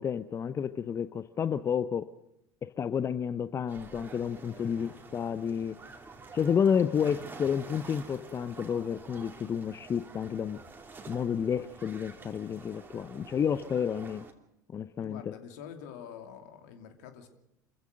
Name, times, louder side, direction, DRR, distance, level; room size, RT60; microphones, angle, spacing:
voice 1, 0.0-2.1 2.8-5.8 6.3-10.6 11.1-14.3 14.7-15.2, left 7 dB, 30° left, 13 dB, 0.7 m, -30 dB
sound 1, 3.7-14.3, right 3 dB, 20° right, 2.9 m, -49 dB
voice 2, 4.4-5.6 15.0-17.3, left 8 dB, 65° left, 6 dB, 2.7 m, -47 dB
27.0 x 15.5 x 6.5 m, 0.84 s
figure-of-eight pair, 75°, 10 cm